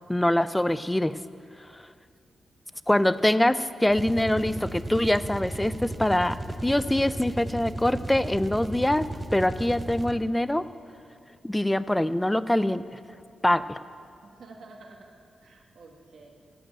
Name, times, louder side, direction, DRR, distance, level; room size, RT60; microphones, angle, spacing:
voice 1, 0.1-1.2 2.9-6.4 6.6-9.1 9.3-10.6 11.4-12.8 13.4-13.8, left 1 dB, 10° left, 15 dB, 0.3 m, -24 dB
sound 1, 3.9-10.4, right 1 dB, 20° right, 0.7 m, -35 dB
voice 2, 14.2-15.1 15.4-16.3, right 3 dB, 70° right, 1 dB, 1.4 m, -49 dB
14.5 x 5.2 x 8.9 m, 2.4 s
wide cardioid pair, 115°, 0 cm